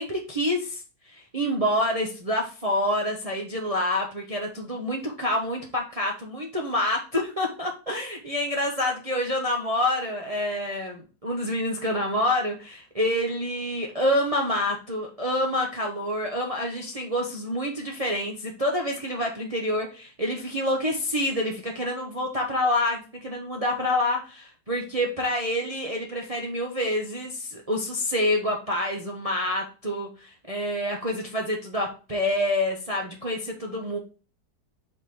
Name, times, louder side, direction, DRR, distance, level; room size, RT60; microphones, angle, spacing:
voice 1, 0.0-34.0, left 1 dB, 30° right, 1 dB, 0.6 m, -27 dB
5.4 x 3.7 x 4.7 m, 0.34 s
omnidirectional pair, 2.0 m